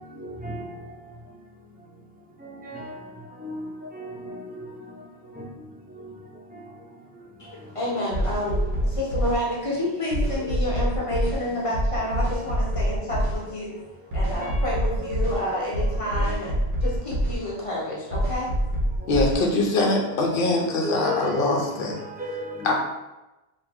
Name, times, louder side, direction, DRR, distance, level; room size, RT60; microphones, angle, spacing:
voice 1, 0.1-0.7 2.4-3.0 3.4-4.7 5.3-5.5 5.9-6.6 7.9-8.1 8.4-8.7 10.2-10.4 12.3-12.6 14.3-16.3 16.8-16.9 19.0-19.2 19.6-20.3 20.8-22.7, left 1 dB, 10° right, 0.4 m, -36 dB
voice 2, 7.4-13.8 14.1-16.6 16.8-18.5, left 1 dB, 30° left, 1.0 m, -29 dB
sound 1, 8.1-9.4 10.1-11.4 11.7-13.4 14.1-15.4 15.7-17.4 18.1-19.4, equal, 85° right, 1.3 m, -25 dB
voice 3, 19.1-21.9 22.6-22.7, left 2 dB, 60° left, 0.9 m, -23 dB
2.9 x 2.9 x 3.5 m
omnidirectional pair, 1.1 m